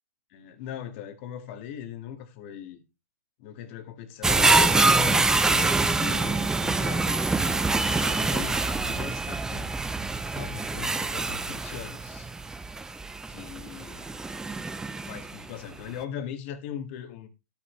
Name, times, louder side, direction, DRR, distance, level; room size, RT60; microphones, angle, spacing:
voice 1, 0.3-2.8 3.4-7.3 7.8-9.8 10.2-12.3 13.2-14.2 15.1-17.3, left 9 dB, 45° left, 1.9 m, -39 dB
sound 1, 4.2-15.4 15.9-16.0, right 3 dB, 5° right, 0.6 m, -25 dB
12.0 x 8.6 x 3.2 m
hypercardioid pair, 130°, 9 cm